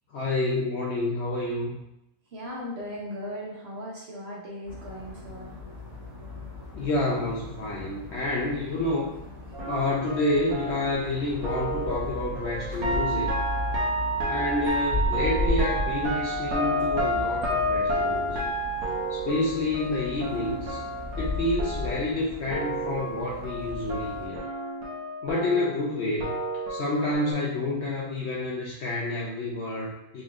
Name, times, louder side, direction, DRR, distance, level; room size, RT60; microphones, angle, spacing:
voice 1, 0.1-1.7 6.8-9.1 9.7-13.3 14.2-18.5 19.1-20.8 21.2-24.4 25.2-26.4 26.7-30.2, left 2 dB, 65° left, -3 dB, 0.7 m, -29 dB
voice 2, 2.3-5.5, equal, 55° right, -4 dB, 0.8 m, -37 dB
sound 1, 4.6-24.3, left 3 dB, 20° right, 1.2 m, -36 dB
sound 2, 9.5-22.2 22.5-27.3, right 1 dB, 85° right, 1.3 m, -30 dB
3.9 x 3.2 x 2.4 m, 0.85 s
omnidirectional pair, 1.6 m